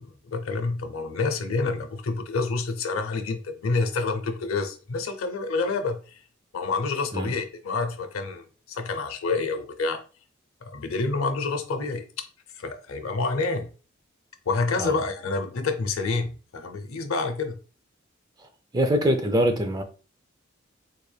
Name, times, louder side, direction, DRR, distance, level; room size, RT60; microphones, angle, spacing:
voice 1, 0.0-6.2 6.5-10.0 10.6-12.0 12.6-13.7 14.5-17.6, left 3 dB, 85° left, 0.6 m, -28 dB
voice 2, 18.7-19.8, equal, 20° right, 0.4 m, -23 dB
3.8 x 3.3 x 2.2 m
head